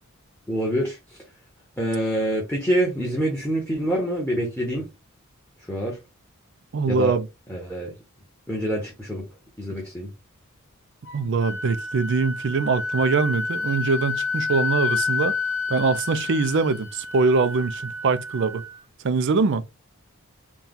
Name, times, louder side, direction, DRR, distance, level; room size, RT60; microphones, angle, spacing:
voice 1, 0.5-1.2 1.8-4.9 5.7-6.0 6.8-7.1 7.5-7.9 8.5-9.3 9.6-10.1, right 1 dB, 10° left, 1.1 m, -26 dB
voice 2, 6.7-7.3 11.1-15.3 15.7-18.6 19.0-19.6, right 4 dB, 55° right, 0.4 m, -23 dB
Wind instrument woodwind instrument, 11.1-18.8, left 4 dB, 45° left, 1.7 m, -29 dB
4.2 x 2.3 x 3.6 m
head